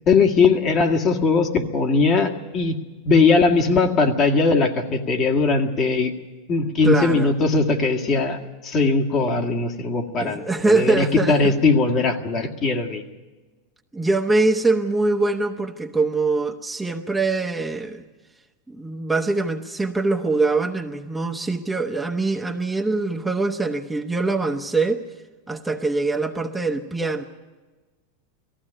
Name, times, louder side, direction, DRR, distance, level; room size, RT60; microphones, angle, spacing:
voice 1, 0.1-2.8 3.1-6.1 6.5-13.0, left 4 dB, 40° left, 2 dB, 1.9 m, -20 dB
voice 2, 6.8-7.3 10.2-11.5 13.9-18.0 18.7-25.0 25.5-27.2, right 3 dB, 10° right, 3 dB, 1.0 m, -23 dB
18.5 x 15.0 x 9.9 m, 1.3 s
hypercardioid pair, 110°, 0 cm